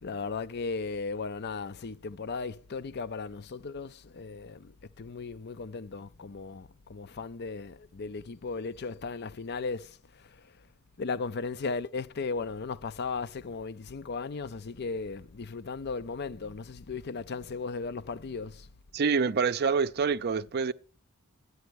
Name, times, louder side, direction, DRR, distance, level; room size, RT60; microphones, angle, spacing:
voice 1, 0.0-4.7 5.0-10.0 11.0-18.7, left 4 dB, 50° left, 0.5 m, -36 dB
voice 2, 18.9-20.7, right 5 dB, 50° right, 0.5 m, -26 dB
13.0 x 9.5 x 6.4 m
head